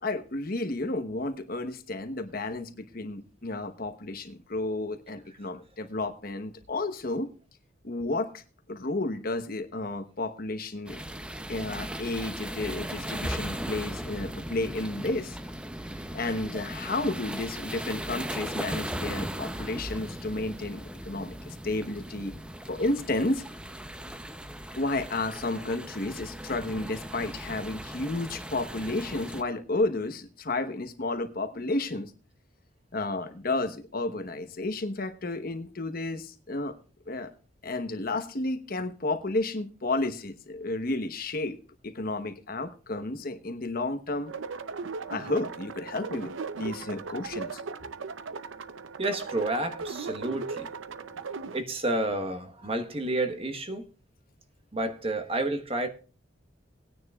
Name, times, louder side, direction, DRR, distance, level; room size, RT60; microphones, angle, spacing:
voice 1, 0.0-7.3 7.8-8.4 8.7-11.0 11.5-15.4 16.1-22.3 22.7-23.4 24.8-32.1 32.9-36.7 37.1-37.3 37.6-41.6 41.8-44.3 45.1-47.6, left 2 dB, 50° left, 1.0 m, -32 dB
sound 1, 10.9-29.4, right 1 dB, 5° right, 0.6 m, -38 dB
sound 2, 44.3-51.6, right 4 dB, 85° right, 0.6 m, -37 dB
voice 2, 49.0-50.7 51.5-53.9 54.7-55.9, right 2 dB, 30° right, 1.2 m, -30 dB
19.5 x 9.8 x 2.4 m
head